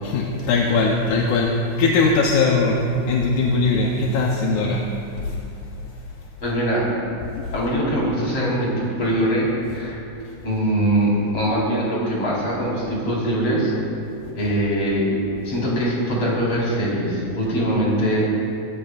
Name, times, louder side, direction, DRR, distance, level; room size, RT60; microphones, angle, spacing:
voice 1, 0.0-4.9 7.3-7.6, left 3 dB, 70° left, -1 dB, 2.2 m, -20 dB
voice 2, 6.4-6.8 7.5-10.0 10.4-13.7 14.3-18.2, right 1 dB, 40° left, -6 dB, 5.3 m, -22 dB
25.0 x 15.0 x 2.5 m, 2.6 s
omnidirectional pair, 4.1 m